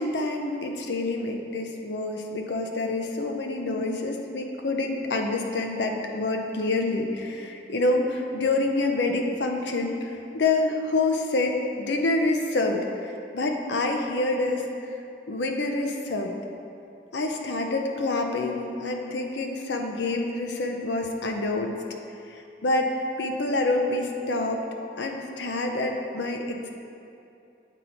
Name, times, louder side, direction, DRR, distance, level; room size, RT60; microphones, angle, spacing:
voice 1, 0.0-14.6 15.3-16.3 17.1-21.7 22.3-24.6 25.0-26.7, left 2 dB, 75° left, 3 dB, 0.6 m, -27 dB
8.1 x 4.0 x 4.4 m, 2.6 s
head